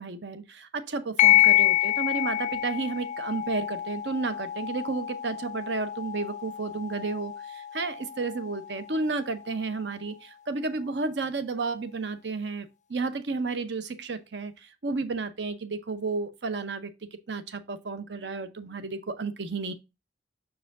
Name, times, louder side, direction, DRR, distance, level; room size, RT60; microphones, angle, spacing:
voice 1, 0.0-16.9 17.3-19.7, right 3 dB, 75° right, 0.7 m, -32 dB
sound 1, 1.2-10.2, left 14 dB, 40° left, 0.4 m, -27 dB
6.3 x 4.8 x 3.5 m
head